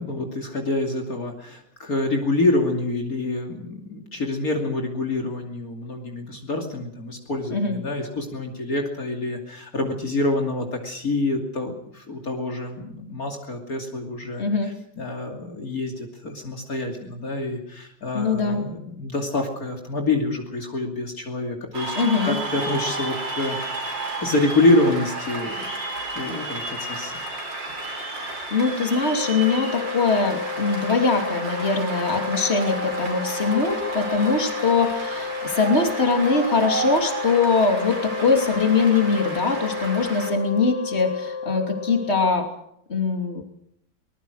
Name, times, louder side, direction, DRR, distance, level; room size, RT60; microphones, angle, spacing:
voice 1, 0.0-21.9 22.2-23.9 24.2-25.6 26.2-27.1, left 2 dB, 50° left, 2 dB, 3.2 m, -26 dB
voice 2, 14.4-14.7 18.1-18.7 21.9-22.4 28.5-42.5 42.9-43.4, left 4 dB, 35° left, 4 dB, 3.2 m, -22 dB
Cheering / Applause, 21.7-40.3, right 2 dB, 85° right, 5.5 m, -32 dB
Wind instrument woodwind instrument, 29.1-42.5, left 6 dB, 75° left, 1.9 m, -32 dB
23.0 x 20.0 x 6.5 m, 0.72 s
omnidirectional pair, 2.0 m